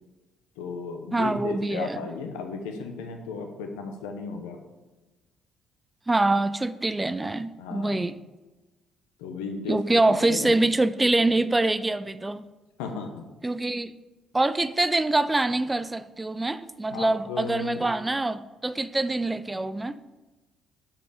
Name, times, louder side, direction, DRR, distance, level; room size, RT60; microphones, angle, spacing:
voice 1, 0.6-4.6 7.6-8.0 9.2-10.5 12.8-13.3 16.9-17.8, left 4 dB, 85° left, 4 dB, 0.9 m, -35 dB
voice 2, 1.1-2.0 6.1-8.1 9.7-12.4 13.4-13.9 14.3-20.0, right 2 dB, 20° right, 14 dB, 0.4 m, -25 dB
6.8 x 5.4 x 5.0 m, 1.2 s
hypercardioid pair, 55°, 0 cm